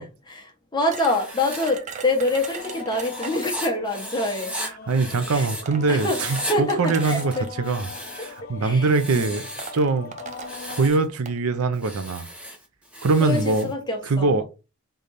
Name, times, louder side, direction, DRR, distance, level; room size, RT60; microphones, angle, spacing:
voice 1, 0.3-4.6 5.3-5.4 5.9-6.2 6.5-7.5 8.2-8.3 8.6-9.3 13.2-14.4, left 2 dB, 20° left, 1.1 m, -26 dB
Writing, 0.9-5.6 5.9-6.5 6.9-8.4 8.8-9.8 10.3-11.0 11.7-13.7, equal, 5° right, 1.0 m, -36 dB
sound 1, 0.9-3.7 4.7-4.8 5.4-7.5 8.4-8.7 9.0-9.1 9.4-11.4, right 5 dB, 35° right, 0.6 m, -39 dB
sound 2, 2.6-10.9, left 7 dB, 40° left, 0.4 m, -41 dB
voice 2, 4.9-7.9 8.2-9.5 9.7-10.2 10.7-12.3 13.0-13.7 14.1-14.4, right 3 dB, 75° right, 0.6 m, -22 dB
3.8 x 3.4 x 4.1 m
head